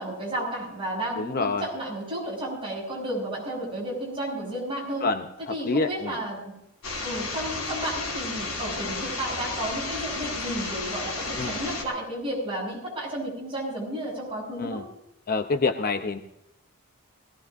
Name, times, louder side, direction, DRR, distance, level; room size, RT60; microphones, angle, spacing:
voice 1, 0.0-5.1 5.4-6.4 7.0-14.8, right 1 dB, 25° right, -4 dB, 7.2 m, -32 dB
voice 2, 1.2-1.6 5.0-5.2 5.7-6.1 11.4-11.5 14.6-14.8 15.3-16.2, left 3 dB, 40° left, 7 dB, 0.7 m, -26 dB
sound 1, 6.8-11.8, left 3 dB, 70° left, 4.3 m, -32 dB
20.5 x 17.5 x 2.6 m, 0.84 s
head